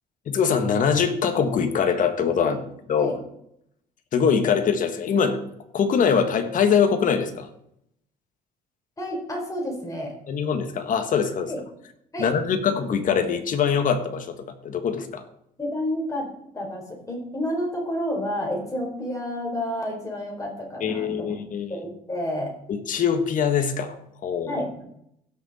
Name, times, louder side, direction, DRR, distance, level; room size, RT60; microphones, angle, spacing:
voice 1, 0.3-2.6 2.9-3.1 4.1-5.4 5.7-7.5 10.3-11.5 12.2-14.4 14.6-15.2 20.8-21.8 22.7-23.9 24.2-24.6, left 6 dB, 50° left, 7 dB, 1.6 m, -23 dB
voice 2, 9.0-10.1 11.5-11.6 12.1-12.3 15.6-16.3 16.5-21.3 21.7-22.5 24.4-24.8, left 1 dB, 20° left, -1 dB, 4.6 m, -30 dB
16.5 x 6.5 x 4.3 m, 0.74 s
cardioid pair, 110°, 17 cm